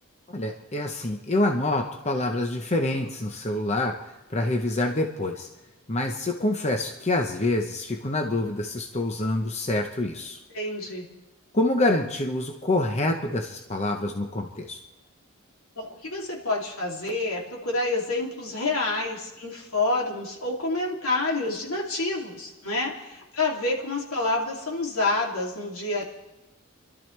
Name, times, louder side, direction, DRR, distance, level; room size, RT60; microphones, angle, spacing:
voice 1, 0.3-3.9 4.3-5.5 5.9-10.4 11.5-14.8, left 2 dB, 30° left, 3 dB, 0.9 m, -26 dB
voice 2, 10.5-11.1 15.8-26.0, left 2 dB, 75° left, -2 dB, 2.8 m, -28 dB
30.0 x 12.5 x 3.3 m, 1.0 s
head